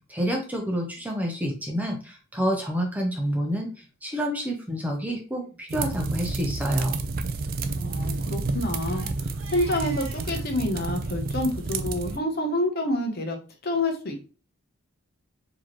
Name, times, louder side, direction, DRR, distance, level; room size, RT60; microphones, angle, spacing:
voice 1, 0.1-3.7 4.0-7.0, equal, 5° right, 1 dB, 0.6 m, -28 dB
Crying sobbing, 3.7-3.9 4.5-4.6 4.9-5.0 5.4-5.6 6.0-6.3 7.4-10.5, right 2 dB, 75° right, 0.9 m, -48 dB
sound 1, 5.7-12.2, right 3 dB, 40° right, 0.3 m, -30 dB
voice 2, 7.7-14.3, left 1 dB, 45° left, 3 dB, 0.8 m, -28 dB
4.6 x 2.9 x 3.0 m, 0.35 s
head